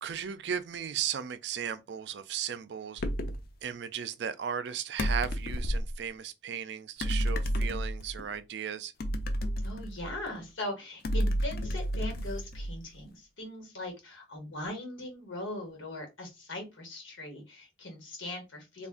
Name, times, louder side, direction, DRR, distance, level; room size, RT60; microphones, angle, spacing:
voice 1, 0.0-3.0 3.6-8.9, right 8 dB, 60° right, 0.4 m, -36 dB
sound 1, 3.0-3.5 5.0-5.9 7.0-8.3 9.0-10.4 11.0-13.0, equal, 50° left, 0.4 m, -31 dB
voice 2, 9.6-18.9, left 1 dB, 90° left, 1.2 m, -40 dB
2.5 x 2.3 x 3.6 m
head